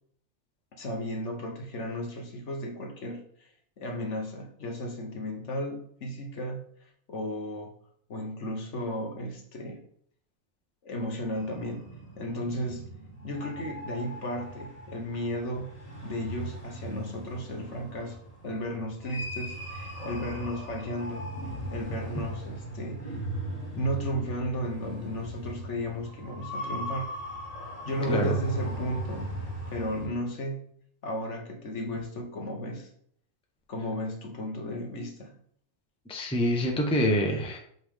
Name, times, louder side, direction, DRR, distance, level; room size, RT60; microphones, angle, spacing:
voice 1, 0.8-3.5 3.8-7.7 8.1-9.8 10.8-12.9 13.2-15.7 16.0-21.3 21.7-23.2 23.7-27.1 27.8-30.6 31.0-32.9 33.7-35.3, equal, 55° left, 2 dB, 1.3 m, -34 dB
sound 1, 11.3-30.1, right 1 dB, 25° left, 1.4 m, -38 dB
voice 2, 36.1-37.6, equal, 5° left, 1 dB, 0.8 m, -26 dB
7.8 x 3.6 x 3.6 m, 0.63 s
omnidirectional pair, 1.6 m